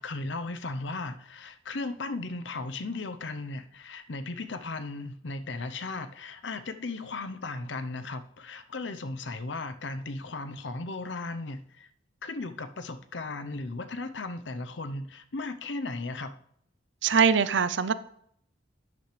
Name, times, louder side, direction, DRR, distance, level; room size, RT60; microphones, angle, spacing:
voice 1, 0.0-11.9 12.2-16.4, left 3 dB, 75° left, 0.8 m, -36 dB
voice 2, 17.0-17.9, right 6 dB, 80° right, 0.6 m, -22 dB
12.0 x 8.6 x 3.3 m
head